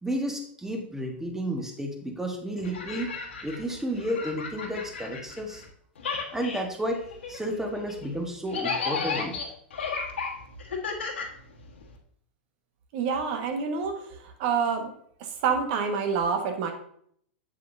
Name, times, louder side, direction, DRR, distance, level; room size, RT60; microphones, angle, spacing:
voice 1, 0.0-3.1 3.4-5.6 6.3-9.4, equal, 5° right, 3 dB, 1.4 m, -32 dB
sound 1, 2.6-5.7 6.0-12.0, left 5 dB, 80° left, 1.4 m, -34 dB
voice 2, 12.9-14.9 15.2-16.7, right 6 dB, 55° right, 5 dB, 1.5 m, -27 dB
7.9 x 7.4 x 2.7 m, 0.64 s
hypercardioid pair, 110°, 6 cm